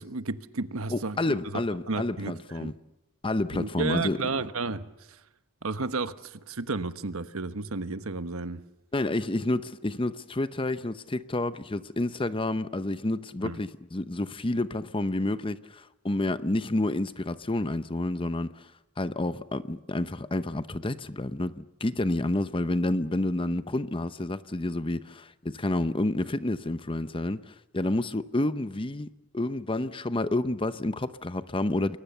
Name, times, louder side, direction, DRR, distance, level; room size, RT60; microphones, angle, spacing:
voice 1, 0.0-1.6 1.9-2.7 3.5-5.2 5.6-8.6 13.4-13.6, right 3 dB, 75° right, 1.2 m, -32 dB
voice 2, 0.9-2.7 3.2-4.2 8.9-18.7 19.0-32.0, left 1 dB, 25° left, 0.8 m, -29 dB
29.5 x 22.0 x 6.9 m
head